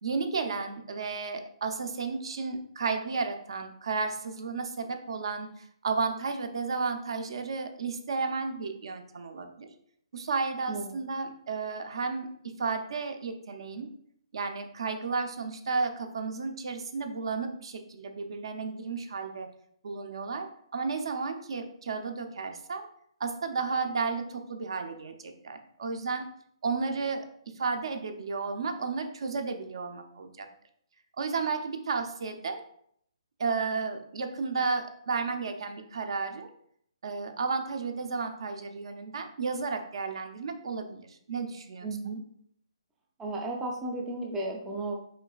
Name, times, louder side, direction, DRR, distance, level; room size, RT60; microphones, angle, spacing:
voice 1, 0.0-9.7 10.1-12.3 12.6-13.9 14.3-19.5 19.8-22.9 23.2-26.3 26.6-27.3 27.5-30.5 31.2-32.6 33.4-36.5 37.0-41.9, right 4 dB, 55° right, 6 dB, 0.6 m, -33 dB
voice 2, 41.8-42.2 43.2-44.9, right 2 dB, 10° right, -1 dB, 0.4 m, -34 dB
5.5 x 4.0 x 2.3 m, 0.68 s
hypercardioid pair, 165°, 3 cm